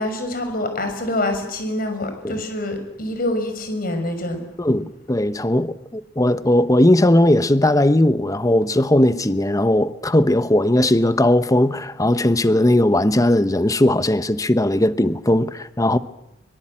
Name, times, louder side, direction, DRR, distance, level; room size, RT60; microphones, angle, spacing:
voice 1, 0.0-4.4, left 1 dB, 55° left, 6.3 m, -25 dB
voice 2, 4.6-16.0, left 1 dB, 20° left, 1.0 m, -18 dB
24.0 x 23.0 x 8.9 m
head